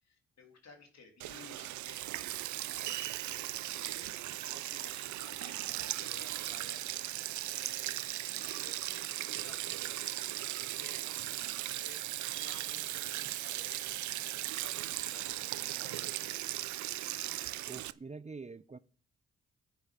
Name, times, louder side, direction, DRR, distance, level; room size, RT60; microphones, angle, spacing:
voice 1, 0.0-2.4 2.7-15.3 15.7-16.4, left 4 dB, 65° left, 3.3 m, -56 dB
Sink (filling or washing), 1.2-17.9, right 15 dB, 75° right, 0.5 m, -38 dB
voice 2, 17.7-18.8, right 4 dB, 25° right, 0.7 m, -45 dB
10.5 x 8.9 x 5.2 m
supercardioid pair, 50°, 29 cm